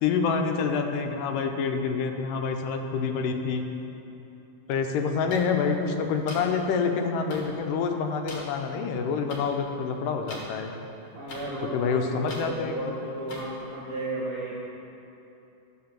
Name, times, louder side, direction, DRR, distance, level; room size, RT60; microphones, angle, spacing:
voice 1, 0.0-3.6 4.7-10.7 11.7-12.8, left 5 dB, 85° left, 5 dB, 2.3 m, -27 dB
sound 1, 5.3-5.4 6.3-6.4 7.3-7.4 8.3-8.4 9.3-9.4 10.3-10.4 11.3-11.4 12.3-12.4 13.3-13.4, left 2 dB, 45° left, 1.9 m, -39 dB
voice 2, 11.1-14.6, right 1 dB, 75° right, -6 dB, 0.9 m, -34 dB
11.5 x 5.1 x 7.2 m, 2.9 s
omnidirectional pair, 3.8 m